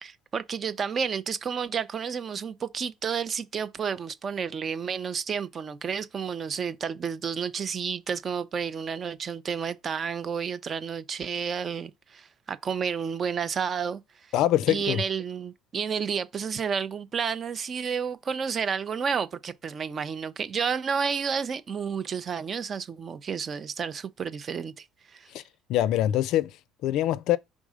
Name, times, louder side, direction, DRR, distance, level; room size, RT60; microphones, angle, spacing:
voice 1, 0.0-14.0 14.7-25.3, right 6 dB, 30° right, 0.6 m, -31 dB
voice 2, 14.3-15.0 25.3-25.4 25.7-26.5 26.8-27.4, left 13 dB, 65° left, 0.4 m, -24 dB
5.3 x 3.7 x 4.9 m
cardioid pair, 140°, 0 cm